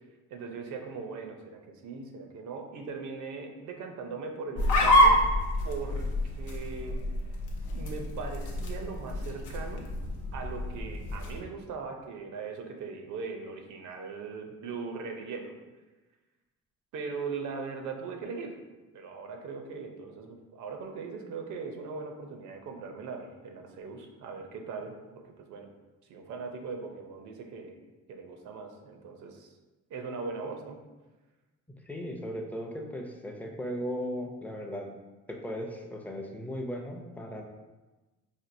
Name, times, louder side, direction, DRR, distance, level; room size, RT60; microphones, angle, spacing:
voice 1, 0.3-5.2 5.6-7.0 7.7-9.9 10.3-15.6 16.9-18.5 18.9-25.0 25.2-25.7 26.1-27.8 28.1-29.5 29.9-30.8, right 4 dB, 75° right, 4 dB, 0.6 m, -39 dB
sound 1, 4.6-11.4, left 1 dB, 80° left, 0.7 m, -27 dB
voice 2, 31.9-34.9 35.3-37.4, equal, 5° left, 1 dB, 0.5 m, -37 dB
4.3 x 2.6 x 2.6 m, 1.2 s
cardioid pair, 90°, 30 cm